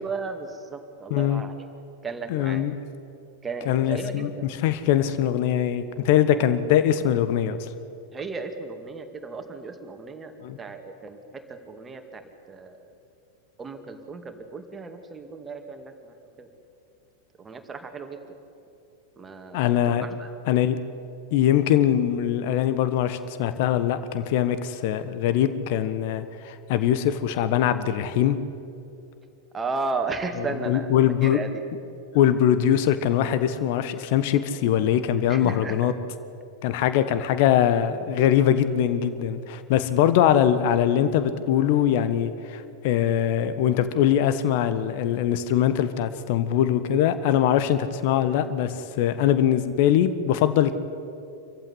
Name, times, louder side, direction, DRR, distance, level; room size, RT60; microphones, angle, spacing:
voice 1, 0.0-1.5 2.0-2.7 3.4-4.5 8.1-12.2 12.5-12.9 13.6-16.5 17.4-18.3 19.2-19.7 20.0-20.3 29.5-30.9 31.2-31.6 35.3-35.9, right 4 dB, 15° right, 6 dB, 2.3 m, -35 dB
voice 2, 1.1-1.4 2.3-2.7 3.7-4.3 4.6-7.7 10.4-10.6 19.5-20.1 20.5-20.8 21.3-28.4 30.7-31.4 32.1-35.9 36.6-50.8, left 10 dB, 50° left, 12 dB, 1.3 m, -22 dB
26.5 x 15.0 x 9.8 m, 2.6 s
figure-of-eight pair, 90°, 0 cm